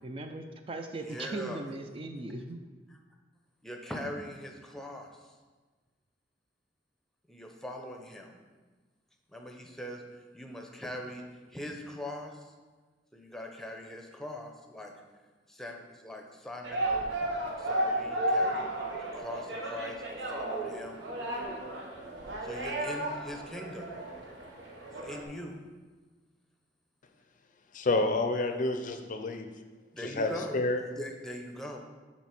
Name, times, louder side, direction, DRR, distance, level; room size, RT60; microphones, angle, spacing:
voice 1, 0.0-2.6, right 2 dB, 30° right, 6 dB, 0.4 m, -38 dB
voice 2, 1.0-1.6 2.9-3.0 3.6-5.3 7.3-8.4 9.3-10.0 10.3-11.2 11.5-12.5 13.1-14.9 15.5-17.3 17.6-21.0 22.4-23.9 25.0-25.6 28.4-28.5 29.9-30.6 31.0-31.8, left 1 dB, ahead, 2 dB, 0.7 m, -42 dB
sound 1, 16.6-25.2, right 1 dB, 80° right, 1.1 m, -33 dB
voice 3, 27.7-29.5 30.0-30.8, left 2 dB, 50° left, 7 dB, 0.5 m, -29 dB
5.9 x 4.2 x 5.8 m, 1.4 s
head